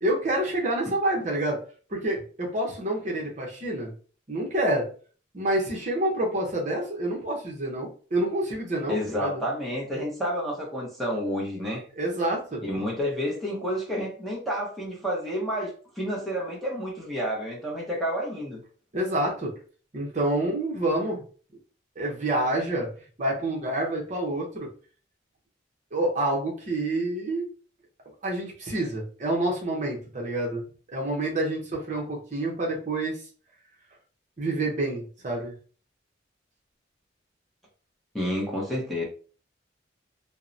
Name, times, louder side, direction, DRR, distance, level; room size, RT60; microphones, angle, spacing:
voice 1, 0.0-1.6 1.9-3.9 4.3-4.9 5.3-9.4 12.0-12.6 18.9-19.5 19.9-21.2 22.0-22.9 23.2-24.7 25.9-27.5 28.2-30.6 30.9-33.2 34.4-35.5, right 1 dB, 40° right, -1 dB, 0.6 m, -28 dB
voice 2, 8.9-11.8 12.6-18.6 38.1-39.0, equal, ahead, -4 dB, 0.6 m, -30 dB
2.7 x 2.0 x 2.5 m, 0.40 s
head